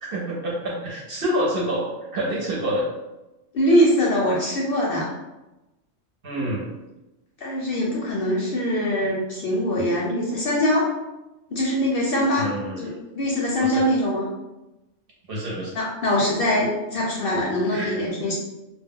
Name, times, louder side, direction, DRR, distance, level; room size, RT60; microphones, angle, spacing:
voice 1, 0.0-1.9 2.1-2.8 6.2-6.6 12.4-12.8 13.6-13.8 15.3-15.7 17.7-18.1, right 1 dB, 55° right, -4 dB, 0.7 m, -27 dB
voice 2, 3.5-5.1 7.4-10.9 11.5-12.5 12.8-14.3 15.7-18.3, equal, 60° left, -4 dB, 0.6 m, -22 dB
2.1 x 2.0 x 3.5 m, 0.99 s
omnidirectional pair, 1.3 m